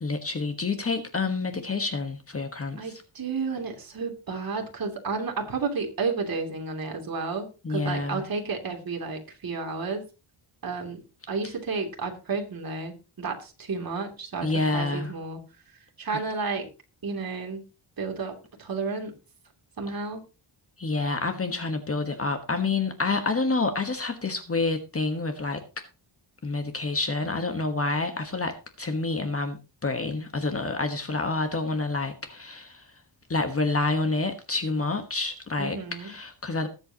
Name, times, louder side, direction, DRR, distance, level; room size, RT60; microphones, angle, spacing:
voice 1, 0.0-3.0 7.6-8.2 14.4-15.1 20.8-25.8 26.4-32.9 33.3-36.7, left 3 dB, 30° left, 1.4 m, -28 dB
voice 2, 2.8-10.1 10.6-11.0 11.3-14.5 14.7-15.4 16.0-16.7 17.0-17.6 18.0-19.1 19.8-20.2 35.6-36.1, right 4 dB, 45° right, 3.0 m, -32 dB
20.5 x 8.0 x 2.9 m
wide cardioid pair, 155°, 48 cm